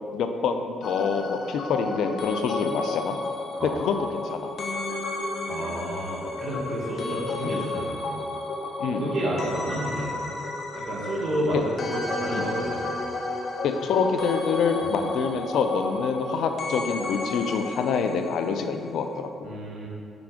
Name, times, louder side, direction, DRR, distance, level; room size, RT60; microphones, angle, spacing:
voice 1, 0.1-3.2 3.6-4.5 7.5-7.6 8.8-9.0 11.5-11.6 12.3-12.5 13.6-19.5, left 5 dB, 75° left, 7 dB, 0.5 m, -26 dB
sound 1, 0.8-18.9 19.2-19.3, left 2 dB, 55° left, 1.0 m, -32 dB
voice 2, 5.5-8.1 8.9-10.3 10.7-12.9 13.9-14.0 14.8-14.9 19.4-19.9, right 1 dB, 45° right, -5 dB, 1.5 m, -30 dB
6.0 x 4.8 x 5.0 m, 2.3 s
cardioid pair, 90°, 0 cm